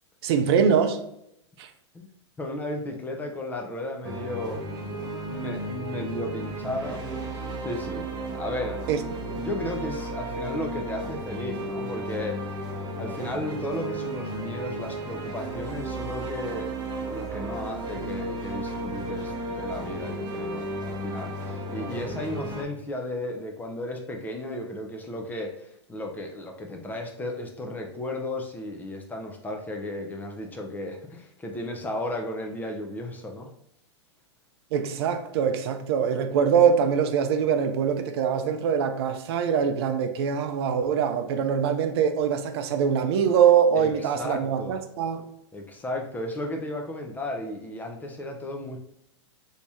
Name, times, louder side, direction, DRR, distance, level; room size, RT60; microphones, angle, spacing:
voice 1, 0.2-1.0 1.6-1.7 8.9-9.0 34.7-45.2, right 7 dB, 55° right, 0.5 m, -23 dB
voice 2, 2.4-4.6 5.3-7.0 7.6-8.1 8.3-8.8 9.4-12.4 13.0-33.5 43.8-44.7 45.5-48.8, left 1 dB, 10° left, 0.4 m, -34 dB
sound 1, 4.0-22.6, right 1 dB, 25° right, 0.8 m, -34 dB
2.9 x 2.8 x 3.4 m
hypercardioid pair, 120°, 15 cm